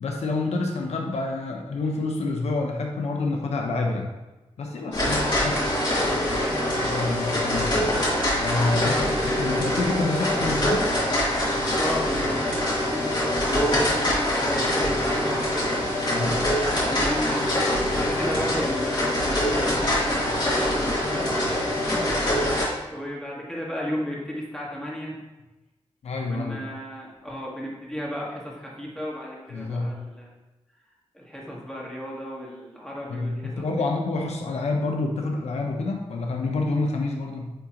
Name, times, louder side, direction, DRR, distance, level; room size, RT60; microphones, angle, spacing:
voice 1, 0.0-4.1 4.6-5.5 6.8-7.9 8.3-10.9 13.5-13.6 16.1-16.4 26.0-26.6 29.5-29.9 33.1-37.5, left 3 dB, 90° left, 2 dB, 0.7 m, -28 dB
voice 2, 4.8-6.8 7.7-8.0 11.7-13.1 13.5-15.8 16.2-17.7 17.9-25.2 26.3-30.3 31.1-33.7, equal, 5° left, -4 dB, 1.8 m, -34 dB
sound 1, 4.9-22.7, left 1 dB, 45° left, 2.2 m, -24 dB
8.9 x 3.6 x 3.0 m, 1.1 s
wide cardioid pair, 85°, 11 cm